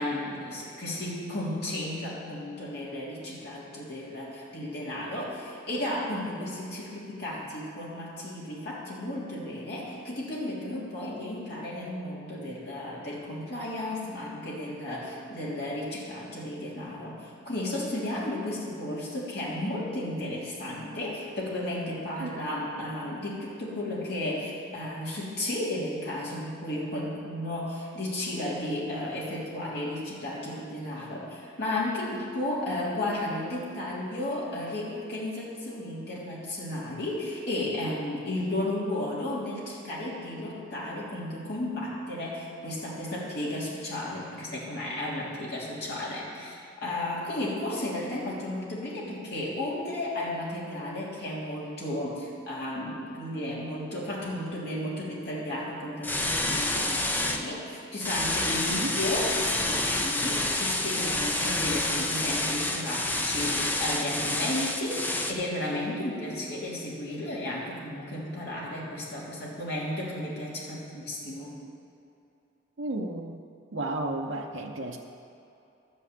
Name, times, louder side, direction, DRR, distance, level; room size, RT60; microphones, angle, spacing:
voice 1, 0.0-71.6, left 1 dB, 55° left, -6 dB, 3.1 m, -33 dB
sound 1, 56.0-57.4 58.0-65.3, left 1 dB, 10° left, 0.6 m, -28 dB
voice 2, 72.8-73.4 73.7-75.0, right 2 dB, 75° right, 0 dB, 0.8 m, -32 dB
12.5 x 5.5 x 8.5 m, 2.7 s
head